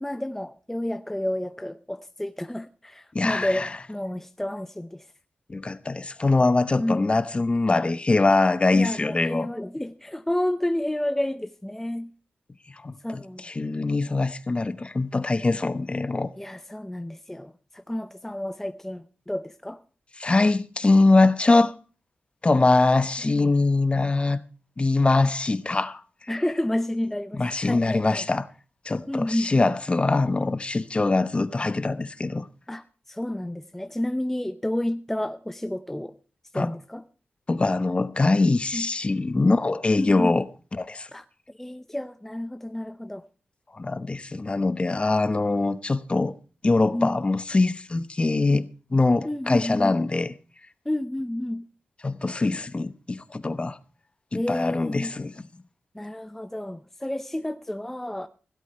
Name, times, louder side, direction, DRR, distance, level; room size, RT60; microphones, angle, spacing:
voice 1, 0.0-5.1 6.8-7.2 8.7-12.1 13.0-13.4 16.4-19.8 23.2-23.5 26.3-28.2 29.1-29.7 32.7-36.1 36.5-37.0 38.7-38.9 40.0-40.4 41.1-43.2 46.9-47.2 49.2-50.0 50.9-51.6 54.3-55.1 55.9-58.3, left 1 dB, 10° left, 0.6 m, -30 dB
voice 2, 3.1-3.7 5.5-9.5 12.8-16.3 20.2-21.7 22.4-24.4 24.8-26.0 27.3-28.5 28.8-32.5 36.5-36.7 37.5-40.4 40.8-41.1 43.7-46.3 46.6-50.3 52.0-53.8 54.3-55.4, left 3 dB, 30° left, 0.9 m, -23 dB
16.5 x 8.2 x 5.6 m
cardioid pair, 80°, 4 cm